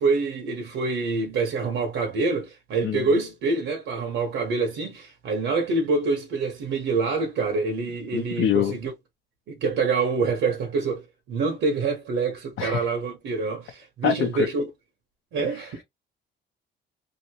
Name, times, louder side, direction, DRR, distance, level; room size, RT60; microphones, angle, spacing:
voice 1, 0.0-8.9 9.5-14.7 15.3-15.8, right 4 dB, 85° right, 1.2 m, -26 dB
voice 2, 8.1-8.7 12.6-12.9 14.0-14.5 15.4-15.6, left 10 dB, 85° left, 0.7 m, -25 dB
3.0 x 2.7 x 2.9 m
cardioid pair, 90°, 20 cm